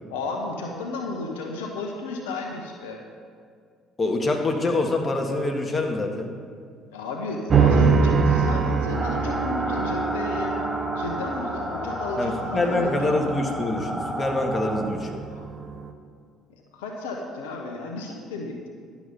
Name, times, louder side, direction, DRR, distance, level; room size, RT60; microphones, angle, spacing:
voice 1, 0.1-3.0 6.9-10.6 11.0-13.2 15.3-15.4 16.7-18.7, left 3 dB, 80° left, 1 dB, 1.0 m, -33 dB
voice 2, 4.0-6.4 12.2-15.2, left 2 dB, 30° left, 2 dB, 1.6 m, -25 dB
sound 1, 7.5-15.9, right 5 dB, 40° right, 0.8 m, -25 dB
sound 2, 8.9-14.9, equal, 5° right, 1.4 m, -32 dB
11.0 x 7.1 x 5.4 m, 2.1 s
hypercardioid pair, 55°, 0 cm